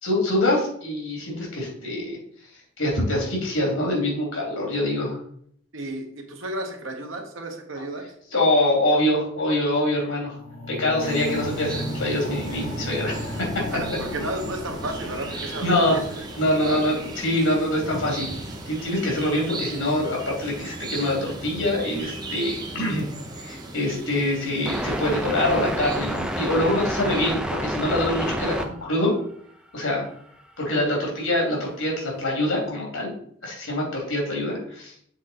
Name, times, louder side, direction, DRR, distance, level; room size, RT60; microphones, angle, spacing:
voice 1, 0.0-2.2 2.8-5.2 8.3-10.4 10.7-13.5 15.6-16.0 16.4-18.3 18.7-23.1 23.4-29.1 29.7-30.1 30.6-33.1 33.4-34.9, left 1 dB, 85° left, -1 dB, 2.7 m, -24 dB
voice 2, 5.7-8.0 11.2-11.3 13.7-16.3 16.6-16.8, right 1 dB, 75° right, 3 dB, 1.3 m, -33 dB
sound 1, 10.3-20.4 21.0-21.1, left 1 dB, 40° left, 2.2 m, -36 dB
sound 2, 11.0-27.3, right 2 dB, 20° right, 0.8 m, -37 dB
sound 3, 24.7-28.6 28.9-29.0 30.3-30.4 30.8-30.9 31.5-31.6, right 1 dB, 5° right, 0.5 m, -28 dB
7.3 x 3.8 x 4.2 m, 0.64 s
head